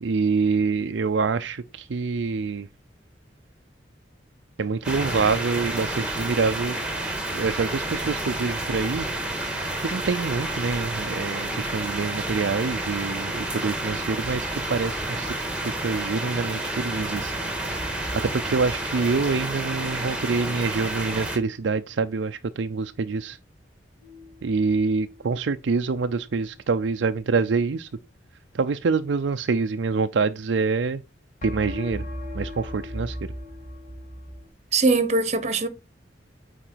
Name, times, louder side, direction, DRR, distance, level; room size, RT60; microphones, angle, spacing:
voice 1, 0.0-2.7 4.6-6.8 7.3-9.1 9.8-15.3 15.6-17.3 18.1-23.4 24.4-27.9 28.5-31.0 31.4-32.0 32.3-33.3, right 4 dB, 75° right, 0.5 m, -26 dB
sound 1, 4.8-21.4, right 1 dB, 5° right, 1.7 m, -30 dB
sound 2, 24.0-24.9 31.4-34.4, equal, 45° left, 2.4 m, -36 dB
voice 2, 34.7-35.7, right 3 dB, 40° right, 1.0 m, -21 dB
8.8 x 4.4 x 4.6 m
head